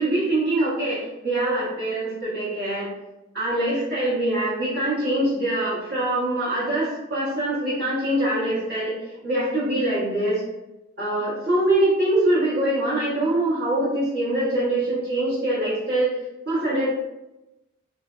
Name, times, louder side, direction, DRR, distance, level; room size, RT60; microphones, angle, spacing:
voice 1, 0.0-2.9 3.3-8.9 9.2-10.4 11.0-16.1 16.4-16.9, right 1 dB, 45° right, -10 dB, 1.3 m, -23 dB
2.5 x 2.1 x 2.4 m, 0.95 s
head